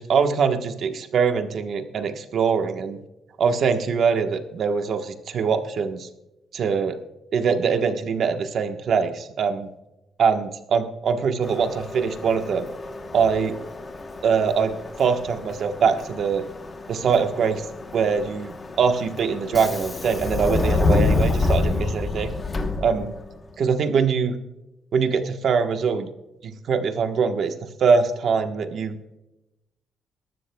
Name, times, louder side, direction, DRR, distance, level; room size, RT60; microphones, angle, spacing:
voice 1, 0.0-3.0 3.4-6.1 6.5-7.0 7.3-9.7 10.2-12.7 13.1-13.6 14.2-16.4 16.9-17.6 17.9-22.3 22.8-23.1 23.6-24.3 24.9-26.1 26.7-27.5 27.8-28.9, right 6 dB, 55° right, 7 dB, 1.1 m, -23 dB
Subway metro underground, 11.4-23.4, left 3 dB, 25° left, 1.0 m, -28 dB
21.0 x 12.5 x 2.3 m, 0.95 s
cardioid pair, 135°, 0 cm